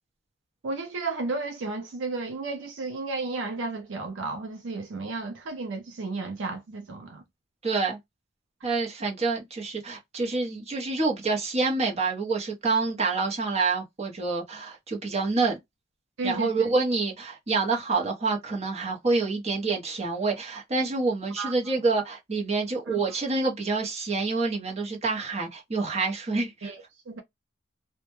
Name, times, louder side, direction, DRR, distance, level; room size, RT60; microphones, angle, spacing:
voice 1, 0.6-7.2 16.2-16.7 21.4-21.5 22.9-23.0 26.6-27.2, right 3 dB, 75° right, 0.5 m, -33 dB
voice 2, 7.6-8.0 8.6-15.6 16.2-26.7, right 3 dB, 35° right, 0.8 m, -27 dB
2.1 x 2.1 x 2.9 m
head